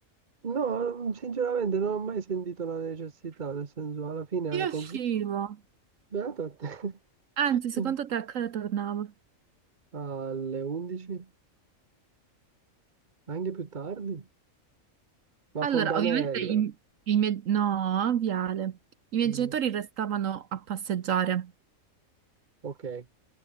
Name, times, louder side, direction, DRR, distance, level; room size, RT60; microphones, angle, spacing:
voice 1, 0.4-5.0 6.1-7.0 7.8-7.9 9.9-11.3 13.3-14.2 15.5-16.6 19.2-19.5 22.6-23.0, right 6 dB, 35° right, 1.4 m, -32 dB
voice 2, 4.5-5.6 7.4-9.1 15.6-16.7 17.1-18.8 19.1-21.5, right 9 dB, 70° right, 1.3 m, -28 dB
omnidirectional pair, 1.4 m